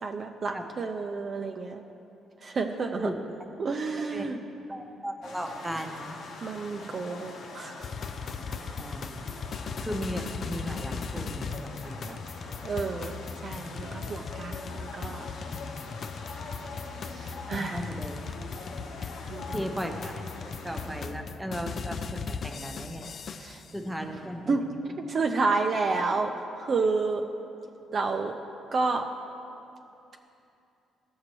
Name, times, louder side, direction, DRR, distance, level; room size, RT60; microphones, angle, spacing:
voice 1, 0.0-1.8 2.4-3.1 3.6-4.4 6.4-7.9 12.1-12.2 12.6-13.1 13.4-15.3 17.1-17.9 19.3-19.6 23.4-23.6 24.5-24.6 25.1-27.2 27.9-28.3 28.7-29.0, right 4 dB, 45° right, 3 dB, 0.6 m, -30 dB
voice 2, 4.7-6.1 8.8-12.2 17.5-18.2 19.5-23.0 23.7-24.7, equal, 10° right, 3 dB, 0.9 m, -36 dB
sound 1, 5.2-21.0, left 3 dB, 80° left, 1.0 m, -43 dB
sound 2, 7.8-23.7, left 5 dB, 50° left, 0.3 m, -38 dB
15.5 x 6.4 x 3.0 m, 2.8 s
cardioid pair, 90°, 0 cm